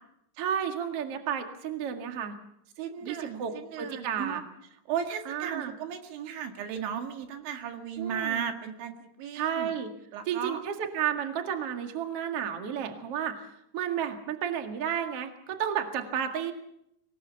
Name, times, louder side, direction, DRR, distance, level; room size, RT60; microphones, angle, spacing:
voice 1, 0.4-2.3 3.0-4.4 5.3-5.7 8.0-8.4 9.3-9.9 10.3-13.4 13.7-16.5, right 8 dB, 50° right, 5 dB, 1.8 m, -32 dB
voice 2, 2.8-4.4 4.9-9.7 10.1-10.6, right 8 dB, 75° right, 6 dB, 4.0 m, -35 dB
24.0 x 19.0 x 7.1 m, 0.77 s
omnidirectional pair, 5.5 m